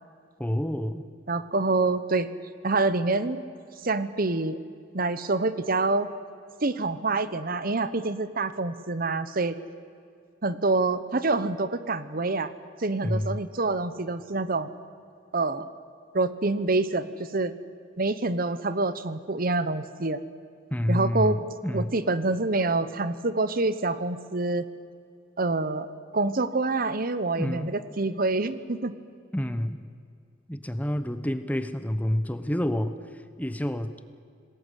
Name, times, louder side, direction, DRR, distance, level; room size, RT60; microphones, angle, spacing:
voice 1, 0.4-1.0 13.0-13.4 20.7-21.9 27.4-27.7 29.3-29.8 30.5-33.0 33.4-33.9, equal, 10° left, 10 dB, 0.9 m, -28 dB
voice 2, 1.3-2.3 2.6-3.4 3.8-4.6 4.9-6.1 6.6-9.6 10.4-12.5 12.8-14.8 15.3-15.7 16.1-17.5 18.0-20.2 20.9-21.4 21.7-24.6 25.4-25.9 26.1-28.9, right 3 dB, 45° right, 13 dB, 1.0 m, -26 dB
27.0 x 19.5 x 8.3 m, 2.3 s
head